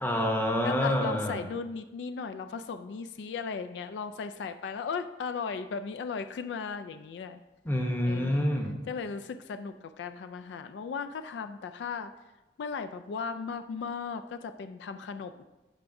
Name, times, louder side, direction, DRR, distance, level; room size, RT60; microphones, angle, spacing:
voice 1, 0.0-1.4 7.6-8.7, left 1 dB, 10° left, 1 dB, 0.8 m, -27 dB
voice 2, 0.6-7.4 8.0-8.5 8.9-12.1 12.6-15.4, left 5 dB, 70° left, 10 dB, 0.3 m, -36 dB
11.5 x 4.7 x 2.6 m, 1.1 s
head